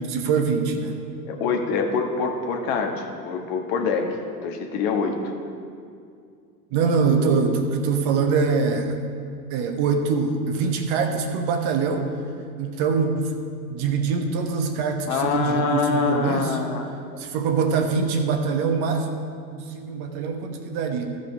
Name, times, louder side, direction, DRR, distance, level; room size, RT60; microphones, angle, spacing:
voice 1, 0.1-1.0 6.7-9.0 9.5-12.1 12.6-13.4 13.7-16.6 17.2-19.2 19.5-21.2, right 5 dB, 45° right, 5 dB, 1.2 m, -23 dB
voice 2, 1.3-4.1 4.4-5.3 15.0-16.9, left 5 dB, 45° left, 3 dB, 1.3 m, -25 dB
13.5 x 5.3 x 5.4 m, 2.3 s
hypercardioid pair, 95°, 50 cm